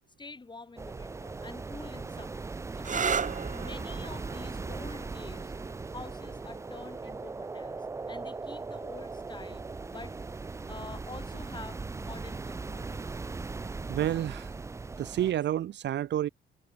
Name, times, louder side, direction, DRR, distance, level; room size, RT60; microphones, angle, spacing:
voice 1, 0.2-5.5 5.9-10.2 10.7-13.1, left 3 dB, 25° left, 4.0 m, -47 dB
sound 1, 0.8-15.3, right 3 dB, 15° right, 0.4 m, -39 dB
sound 2, 2.8-10.2 11.2-11.7 15.2-15.6, right 6 dB, 40° right, 2.0 m, -38 dB
voice 2, 13.9-14.5 15.0-16.3, right 12 dB, 60° right, 0.7 m, -29 dB
cardioid pair, 90°, 20 cm